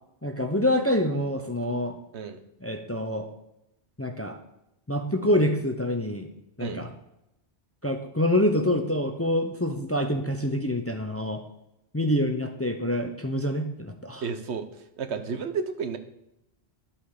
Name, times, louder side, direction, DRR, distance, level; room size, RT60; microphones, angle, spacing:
voice 1, 0.2-2.0 2.6-3.3 4.0-4.4 4.9-6.3 6.6-6.9 7.8-11.4 11.9-14.2, left 1 dB, 15° left, 5 dB, 0.6 m, -26 dB
voice 2, 14.2-14.7 15.0-16.0, right 5 dB, 85° right, 9 dB, 1.2 m, -31 dB
11.0 x 5.8 x 4.9 m, 0.84 s
omnidirectional pair, 1.1 m